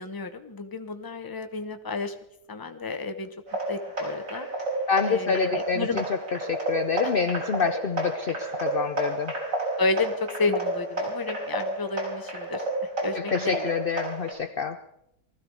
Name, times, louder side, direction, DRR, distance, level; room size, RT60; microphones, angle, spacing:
voice 1, 0.0-2.1 2.5-3.3 3.7-4.5 5.1-6.0 9.8-12.6 13.0-13.7, left 3 dB, 15° left, 8 dB, 0.8 m, -31 dB
sound 1, 3.5-14.3, right 2 dB, 55° right, 5.3 m, -31 dB
voice 2, 4.9-6.0 6.4-9.3 13.1-14.8, left 6 dB, 50° left, 9 dB, 0.6 m, -27 dB
20.0 x 14.5 x 4.7 m, 0.77 s
omnidirectional pair, 1.7 m